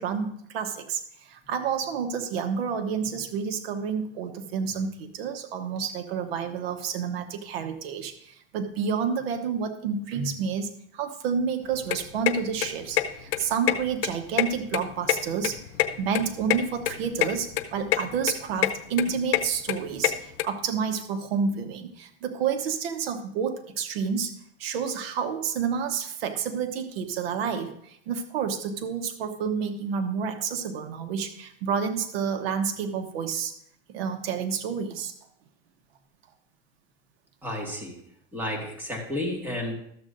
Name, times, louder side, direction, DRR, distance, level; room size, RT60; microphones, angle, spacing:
voice 1, 0.0-15.6 16.0-24.3 24.6-33.5 33.9-35.1, right 6 dB, 75° right, 7 dB, 1.1 m, -29 dB
sound 1, 11.6-20.4, left 14 dB, 65° left, 0.8 m, -27 dB
voice 2, 37.4-38.0 38.3-39.7, left 1 dB, 5° right, -1 dB, 1.9 m, -31 dB
13.5 x 7.5 x 2.6 m, 0.70 s
supercardioid pair, 145°, 31 cm